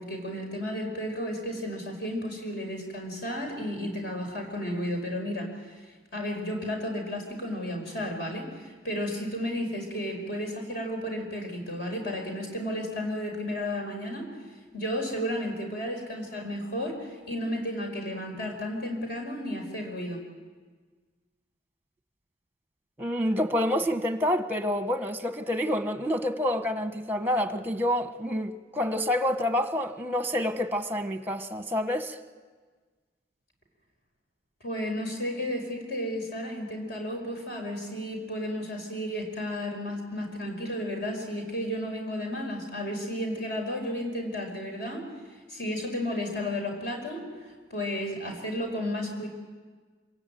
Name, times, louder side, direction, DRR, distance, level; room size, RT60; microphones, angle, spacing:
voice 1, 0.0-5.8 6.1-14.2 14.7-20.2 34.6-45.0 45.5-47.2 47.7-49.3, equal, 55° left, 5.4 m, -33 dB
voice 2, 23.0-32.2, left 1 dB, 10° right, 1.0 m, -28 dB
26.5 x 17.0 x 9.2 m
head